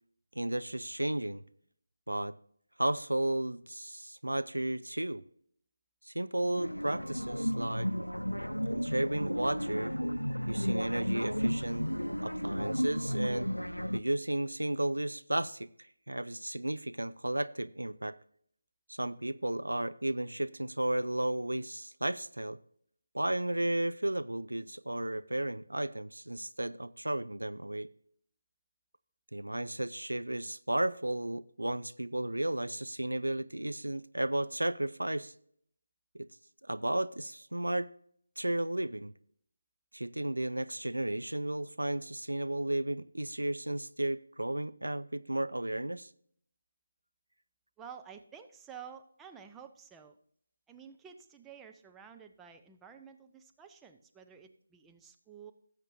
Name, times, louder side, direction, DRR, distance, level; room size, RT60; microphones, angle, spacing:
voice 1, 0.3-1.4 2.1-2.4 2.8-5.2 6.1-7.9 8.7-10.0 10.5-11.9 12.2-13.5 13.9-18.2 18.9-22.6 23.1-27.9 29.3-35.3 36.1-36.3 36.6-37.9 38.4-39.1 39.9-46.1, right 1 dB, 75° right, 0.5 m, -33 dB
sound 1, 6.6-14.0, equal, 90° left, 0.5 m, -33 dB
voice 2, 47.8-50.2 50.7-55.5, right 7 dB, 5° right, 0.5 m, -51 dB
18.0 x 7.4 x 2.6 m
figure-of-eight pair, 155°, 0 cm